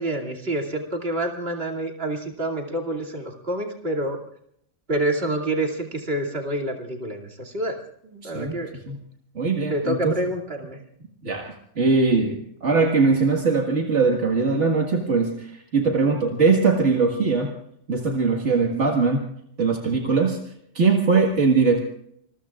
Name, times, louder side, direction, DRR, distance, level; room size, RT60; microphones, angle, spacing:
voice 1, 0.0-4.2 4.9-7.8 8.0-8.7 9.7-10.8, right 1 dB, 55° right, 1 dB, 2.8 m, -27 dB
voice 2, 8.2-8.6 8.9-9.0 9.4-10.1 11.2-17.5 17.9-19.3 19.6-20.4 20.7-21.8, right 4 dB, 75° right, 1 dB, 2.1 m, -21 dB
27.0 x 21.5 x 2.4 m, 0.71 s
omnidirectional pair, 1.2 m